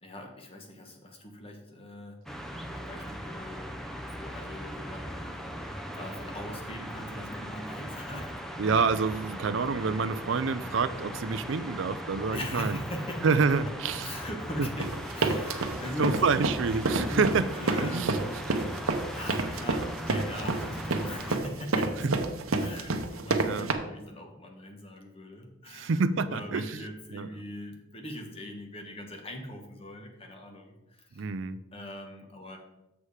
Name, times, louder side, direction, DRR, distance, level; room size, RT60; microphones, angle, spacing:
voice 1, 0.0-2.2 2.7-3.8 4.2-8.3 12.3-13.3 14.0-16.2 16.9-18.9 19.1-22.2 22.6-31.3 31.7-32.6, left 1 dB, 25° left, 3 dB, 1.2 m, -41 dB
sound 1, 2.3-21.4, equal, ahead, 0.6 m, -39 dB
voice 2, 8.6-12.8 13.2-14.2 14.6-14.7 16.0-18.2 22.0-22.1 23.4-23.7 25.7-26.8 27.1-27.3 31.2-31.6, right 4 dB, 60° right, 13 dB, 0.4 m, -27 dB
sound 2, 14.8-23.7, right 3 dB, 80° right, 0.8 m, -28 dB
7.0 x 6.4 x 4.9 m, 0.93 s
head